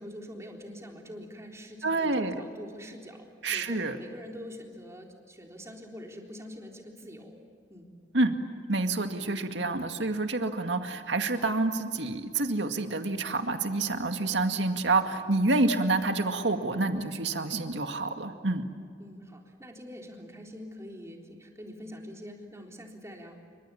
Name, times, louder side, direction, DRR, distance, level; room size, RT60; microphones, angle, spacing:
voice 1, 0.0-7.4 7.7-7.9 19.0-23.4, equal, 15° right, 1 dB, 3.8 m, -44 dB
voice 2, 1.8-2.3 3.4-4.0 8.1-8.4 8.7-18.7, right 2 dB, 75° right, 6 dB, 2.1 m, -28 dB
29.5 x 25.0 x 7.1 m, 2.1 s
head